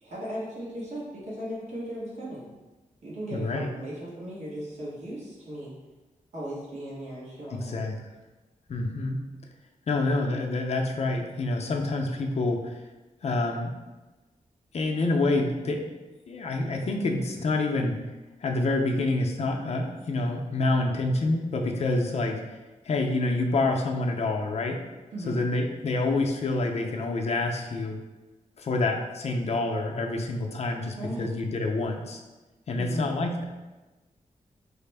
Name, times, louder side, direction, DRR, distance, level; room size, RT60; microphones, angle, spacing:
voice 1, 0.0-2.4 3.0-5.7 6.3-7.7 25.1-25.4 31.0-31.3 32.7-33.0, equal, 55° right, -7 dB, 1.1 m, -37 dB
voice 2, 3.3-3.7 7.5-7.9 8.7-9.2 9.9-12.8 13.2-13.7 14.7-16.0 16.3-18.0 18.4-22.4 22.8-24.8 25.3-28.0 28.6-32.2 32.7-33.4, left 2 dB, 50° left, 2 dB, 0.5 m, -27 dB
4.8 x 2.0 x 3.3 m, 1.1 s
wide cardioid pair, 125°, 14 cm